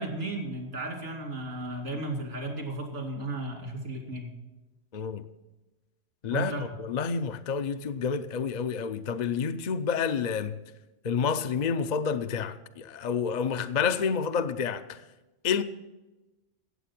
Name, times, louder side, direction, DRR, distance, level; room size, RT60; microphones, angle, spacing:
voice 1, 0.0-4.3 6.3-6.7, right 2 dB, 85° right, 3.0 m, -34 dB
voice 2, 4.9-5.2 6.2-10.6 11.0-15.0 15.4-15.6, left 6 dB, 50° left, 0.6 m, -29 dB
16.5 x 7.9 x 5.9 m
omnidirectional pair, 1.2 m